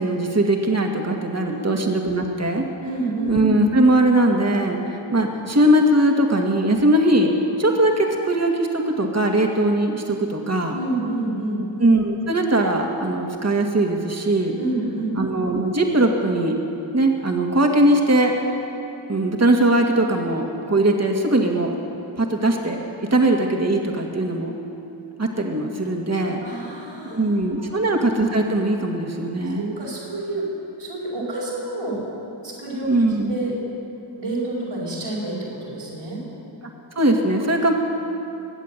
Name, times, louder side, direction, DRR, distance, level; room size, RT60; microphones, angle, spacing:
voice 1, 0.0-2.6 3.3-7.3 7.6-10.8 11.8-14.6 15.1-16.6 16.9-18.4 19.1-21.8 22.2-24.6 25.2-26.4 27.0-29.8 32.9-33.3 37.0-37.7, right 1 dB, 30° right, 2 dB, 2.0 m, -20 dB
voice 2, 2.8-3.3 10.7-11.6 14.6-15.1 26.4-27.2 27.6-27.8 29.5-30.4 30.8-32.0 32.4-33.5 34.2-36.2, right 2 dB, 75° right, -8 dB, 4.7 m, -28 dB
22.0 x 8.3 x 7.5 m, 2.8 s
cardioid pair, 40°, 48 cm